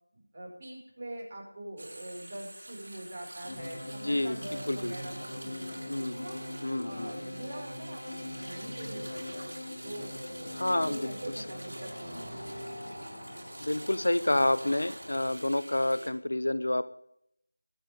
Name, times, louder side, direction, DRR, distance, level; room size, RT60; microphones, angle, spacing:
voice 1, 0.1-6.4 6.8-9.5 9.8-12.1 12.4-12.6, right 1 dB, 25° right, -2 dB, 5.7 m, -44 dB
sound 1, 1.8-16.1, right 1 dB, 70° right, 5.7 m, -47 dB
sound 2, 3.4-15.3, left 1 dB, 45° left, 4.6 m, -42 dB
voice 2, 4.0-4.4 4.7-4.9 5.9-6.3 6.6-7.1 10.5-11.4 13.6-16.9, left 1 dB, 70° left, 15 dB, 0.9 m, -29 dB
sound 3, 9.4-15.3, right 1 dB, 50° right, 6.2 m, -50 dB
24.0 x 9.2 x 3.7 m, 0.75 s
figure-of-eight pair, 175°, 0 cm